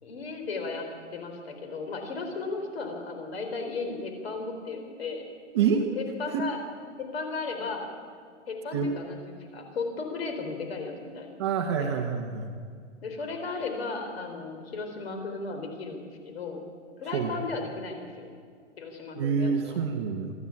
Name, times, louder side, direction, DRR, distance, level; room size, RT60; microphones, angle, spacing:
voice 1, 0.0-5.2 6.0-6.6 7.0-7.9 8.5-11.4 11.8-11.9 13.0-16.6 17.0-18.3 18.8-19.8, left 4 dB, 55° left, 4 dB, 4.3 m, -35 dB
voice 2, 11.4-12.5 17.1-17.3 19.1-20.3, right 6 dB, 20° right, 3 dB, 1.0 m, -27 dB
24.0 x 14.0 x 8.5 m, 2.1 s
hypercardioid pair, 175°, 37 cm